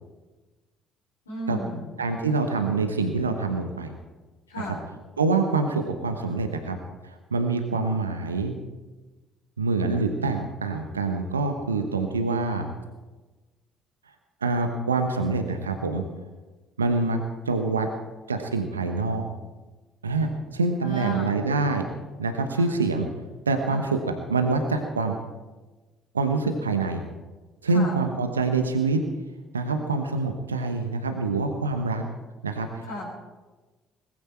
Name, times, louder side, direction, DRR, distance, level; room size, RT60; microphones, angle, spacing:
voice 1, 1.3-2.0 4.5-4.9 20.8-21.4 22.5-22.7 23.7-23.9 27.7-28.0 32.8-33.1, left 1 dB, 80° left, -5 dB, 3.7 m, -35 dB
voice 2, 2.0-3.9 5.2-6.8 7.0-8.5 9.6-12.7 14.4-16.0 16.8-17.2 17.4-17.9 18.3-19.3 20.0-21.9 22.2-23.1 23.5-25.2 26.1-27.0 27.6-29.0 29.5-32.0 32.4-32.8, right 3 dB, 85° right, 6 dB, 1.0 m, -25 dB
20.0 x 15.0 x 4.4 m, 1.2 s
figure-of-eight pair, 50°, 0 cm